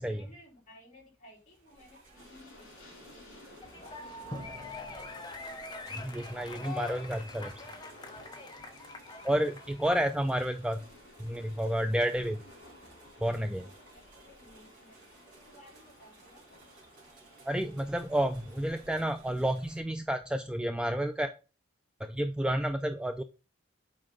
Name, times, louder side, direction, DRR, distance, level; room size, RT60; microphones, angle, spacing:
voice 1, 0.0-2.7 3.0-4.7 6.0-7.4 7.7-7.8 13.9-15.0 15.3-16.4, left 1 dB, 35° left, -3 dB, 3.1 m, -57 dB
sound 1, 1.4-19.8, right 2 dB, 40° right, 2.7 m, -58 dB
Train, 2.1-19.1, left 2 dB, 65° left, 3.3 m, -56 dB
sound 2, 3.6-10.3, left 2 dB, 20° left, 0.8 m, -43 dB
voice 2, 5.9-7.5 9.2-10.8 11.2-12.4 13.2-13.7 17.4-21.3 22.0-23.2, right 1 dB, 5° right, 7 dB, 0.3 m, -30 dB
7.8 x 4.9 x 3.7 m, 0.33 s
head